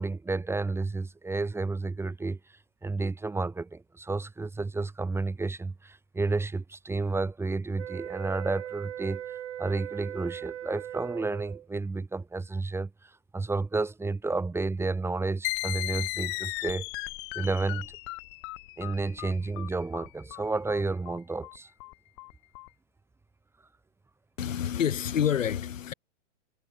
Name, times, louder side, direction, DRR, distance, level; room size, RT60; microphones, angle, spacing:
voice 1, 0.0-2.4 2.8-9.2 9.6-16.9 17.3-17.9 18.8-21.7, right 3 dB, 5° right, 2.0 m, -31 dB
sound 1, 7.7-11.7, right 11 dB, 70° right, 5.5 m, -39 dB
sound 2, 15.4-22.7, left 26 dB, 20° left, 0.4 m, -36 dB
voice 2, 24.4-25.9, left 9 dB, 80° left, 3.2 m, -28 dB
hypercardioid pair, 135°, 38 cm